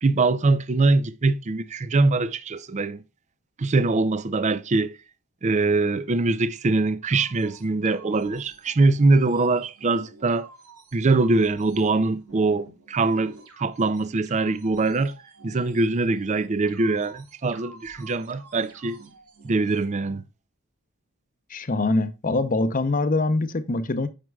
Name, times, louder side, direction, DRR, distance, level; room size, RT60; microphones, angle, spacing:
voice 1, 0.0-3.0 3.6-4.9 5.4-10.5 10.9-15.1 15.4-19.0 19.4-20.2, right 3 dB, 30° right, 0.4 m, -23 dB
sound 1, 7.1-19.8, right 3 dB, 80° right, 3.2 m, -50 dB
voice 2, 21.5-24.1, left 2 dB, 40° left, 0.7 m, -24 dB
9.3 x 6.0 x 2.3 m
head